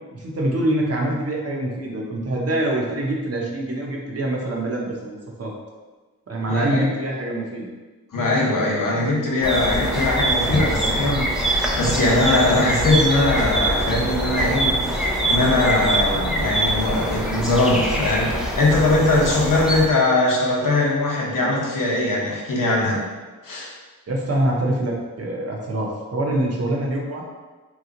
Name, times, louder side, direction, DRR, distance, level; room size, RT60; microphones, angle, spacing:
voice 1, 0.1-5.5 6.3-7.7 24.1-27.3, right 1 dB, 45° right, -1 dB, 0.8 m, -25 dB
voice 2, 6.5-6.8 8.1-23.0 23.4-23.7, left 2 dB, 70° left, -3 dB, 0.9 m, -21 dB
sound 1, 9.4-19.9, right 1 dB, ahead, 0.5 m, -23 dB
2.9 x 2.3 x 3.7 m, 1.3 s
cardioid pair, 65°, 33 cm